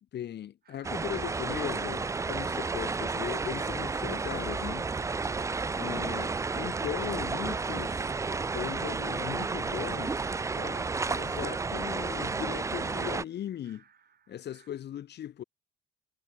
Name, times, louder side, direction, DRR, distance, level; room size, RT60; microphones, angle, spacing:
voice 1, 0.1-4.9 5.7-8.1 8.5-10.3 10.6-13.8 14.3-15.4, left 11 dB, 60° left, 0.8 m, -38 dB
sound 1, 0.6-14.7, right 7 dB, 50° right, 4.0 m, -64 dB
sound 2, 0.8-13.2, right 4 dB, 15° right, 0.3 m, -32 dB
cardioid pair, 90°, 20 cm